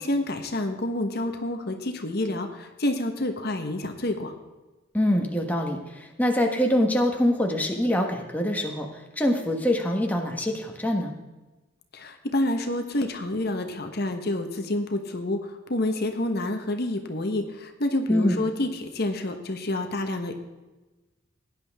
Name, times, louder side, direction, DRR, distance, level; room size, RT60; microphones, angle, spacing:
voice 1, 0.0-4.3 11.9-20.3, left 1 dB, 50° left, 6 dB, 1.2 m, -28 dB
voice 2, 4.9-11.1 18.1-18.4, left 1 dB, 10° left, 2 dB, 1.4 m, -24 dB
17.5 x 10.5 x 3.6 m, 1.1 s
head